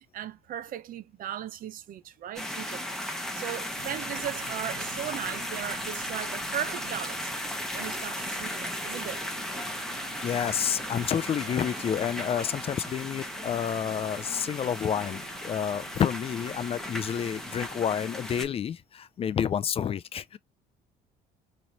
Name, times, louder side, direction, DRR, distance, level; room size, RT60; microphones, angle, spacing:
voice 1, 0.1-7.3 7.7-9.2, right 11 dB, 55° right, 0.6 m, -37 dB
sound 1, 2.4-18.4, left 1 dB, 5° left, 1.0 m, -36 dB
Bicycle / Mechanisms, 3.8-17.7, right 8 dB, 75° right, 1.1 m, -50 dB
voice 2, 10.2-20.4, left 8 dB, 35° left, 0.3 m, -29 dB
3.1 x 2.9 x 3.9 m
cardioid pair, 110°, 17 cm